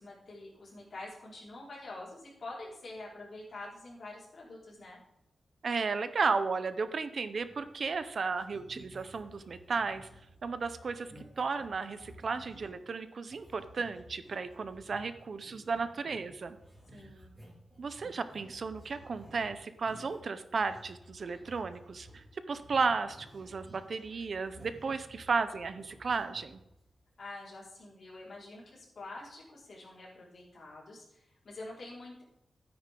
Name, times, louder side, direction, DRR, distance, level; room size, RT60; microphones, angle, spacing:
voice 1, 0.0-5.0 16.9-17.3 27.2-32.2, left 2 dB, 50° left, -6 dB, 4.8 m, -46 dB
voice 2, 5.6-10.1 10.4-16.6 17.8-26.6, right 4 dB, 45° right, 11 dB, 0.6 m, -34 dB
sound 1, 7.2-8.0 8.3-12.8 13.3-27.0, right 1 dB, 20° right, 2.4 m, -55 dB
13.5 x 9.6 x 3.8 m, 0.85 s
wide cardioid pair, 180°, 0 cm